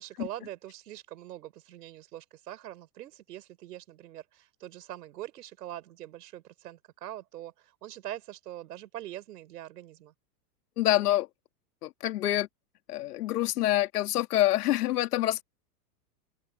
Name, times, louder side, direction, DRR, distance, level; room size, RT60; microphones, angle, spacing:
voice 1, 0.0-10.1, right 13 dB, 75° right, 4.8 m, -43 dB
voice 2, 10.8-11.3 11.8-12.5 12.9-15.4, left 14 dB, 70° left, 2.7 m, -26 dB
open air
supercardioid pair, 165°, 48 cm